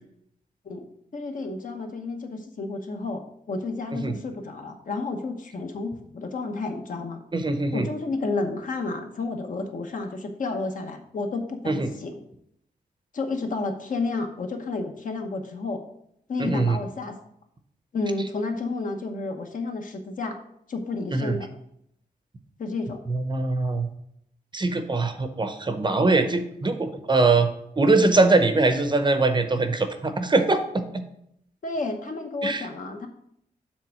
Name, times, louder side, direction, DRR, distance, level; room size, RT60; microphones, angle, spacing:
voice 1, 1.1-7.2 7.7-12.2 13.1-15.8 16.3-17.2 17.9-20.4 20.7-21.5 22.6-23.0 31.6-33.1, left 3 dB, 55° left, 4 dB, 1.0 m, -31 dB
voice 2, 7.3-7.9 11.7-11.9 16.4-16.8 21.1-21.4 23.1-23.9 24.5-27.5 27.8-31.0 32.4-32.7, right 3 dB, 30° right, 8 dB, 0.7 m, -22 dB
7.5 x 3.5 x 6.2 m, 0.74 s
wide cardioid pair, 125°, 16 cm